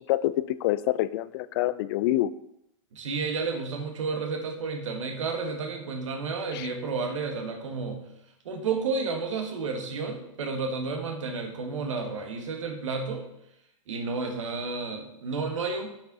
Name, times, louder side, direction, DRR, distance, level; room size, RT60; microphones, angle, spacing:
voice 1, 0.6-2.3 6.5-6.7, left 15 dB, 45° left, 17 dB, 0.4 m, -26 dB
voice 2, 2.9-8.1 8.4-13.2 13.9-15.9, right 4 dB, 65° right, 4 dB, 1.7 m, -31 dB
8.5 x 6.0 x 4.1 m, 0.82 s
figure-of-eight pair, 100°, 17 cm